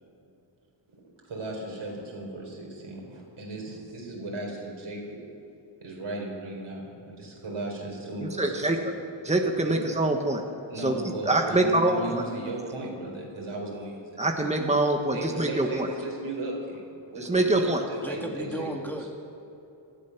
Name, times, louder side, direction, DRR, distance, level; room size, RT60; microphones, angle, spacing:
voice 1, 1.3-5.2 5.8-8.7 9.6-9.8 10.7-18.7, right 2 dB, 90° right, -1 dB, 4.4 m, -36 dB
voice 2, 8.2-8.8 9.2-10.4 10.8-10.9 11.2-12.0 14.2-15.9 17.2-17.8, right 2 dB, 15° right, 3 dB, 1.4 m, -24 dB
voice 3, 18.0-19.1, equal, 5° left, 1 dB, 2.0 m, -35 dB
18.5 x 13.0 x 6.0 m, 2.9 s
wide cardioid pair, 75°, 47 cm